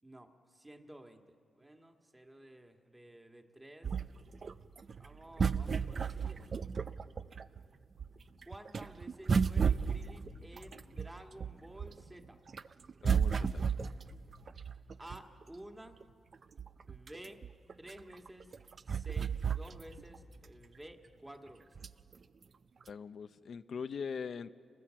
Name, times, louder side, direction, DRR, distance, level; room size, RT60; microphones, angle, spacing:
voice 1, 0.0-3.9 5.0-6.6 8.4-12.4 15.0-16.0 16.9-17.4 17.8-18.5 18.8-21.8, right 1 dB, 15° right, 4 dB, 1.8 m, -52 dB
sound 1, 3.8-7.6 8.0-12.1 12.5-15.4 16.0-16.1 16.3-20.2 20.5-20.6 21.8-22.1 22.8-22.9, right 6 dB, 50° right, 0.5 m, -33 dB
voice 2, 13.0-13.6 22.9-24.5, left 6 dB, 60° left, 10 dB, 0.6 m, -41 dB
29.0 x 20.5 x 7.6 m, 2.5 s
cardioid pair, 80°, 0 cm